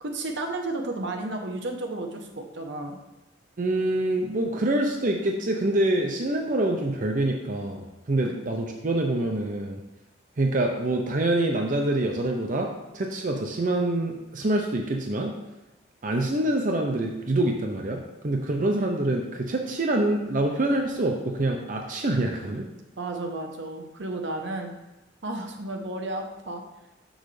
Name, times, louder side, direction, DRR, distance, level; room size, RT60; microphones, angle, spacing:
voice 1, 0.0-3.0 8.2-8.3 23.0-24.7 25.2-26.6, right 2 dB, 70° right, 3 dB, 0.9 m, -32 dB
voice 2, 3.6-9.8 10.4-12.7 12.9-15.3 16.0-22.7, right 1 dB, 45° right, 2 dB, 0.6 m, -26 dB
6.5 x 6.3 x 3.2 m, 1.0 s
head